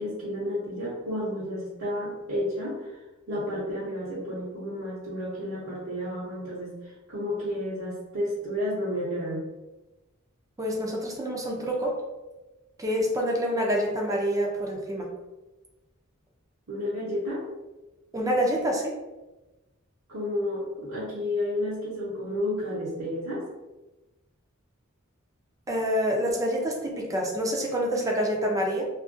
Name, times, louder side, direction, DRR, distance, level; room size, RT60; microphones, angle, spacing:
voice 1, 0.0-3.0 3.3-9.4 16.7-17.4 20.1-23.5, left 1 dB, 70° right, -9 dB, 0.7 m, -31 dB
voice 2, 10.6-12.0 12.8-15.1 18.1-18.9 25.7-28.8, equal, 15° right, -1 dB, 0.4 m, -27 dB
2.7 x 2.4 x 2.5 m, 1.1 s
head